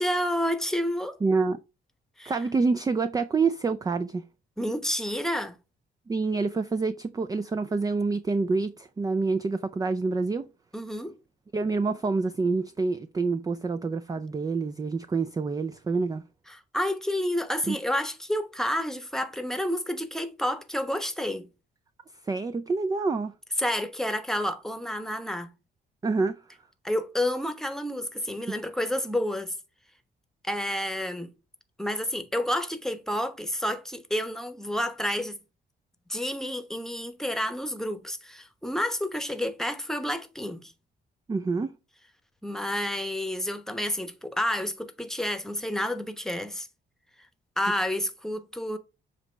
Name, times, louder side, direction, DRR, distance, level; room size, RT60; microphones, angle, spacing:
voice 1, 0.0-1.2 2.2-2.3 4.6-5.5 10.7-11.1 16.5-21.5 23.6-25.5 26.8-29.5 30.4-31.3 31.8-35.4 36.1-40.7 42.4-46.7 47.6-48.8, left 1 dB, ahead, 1.0 m, -30 dB
voice 2, 1.2-1.6 2.3-4.3 6.1-10.5 11.5-16.2 17.7-17.8 22.3-23.3 26.0-26.4 41.3-41.7, right 4 dB, 20° right, 0.4 m, -27 dB
7.4 x 2.9 x 4.4 m
cardioid pair, 90°, 20 cm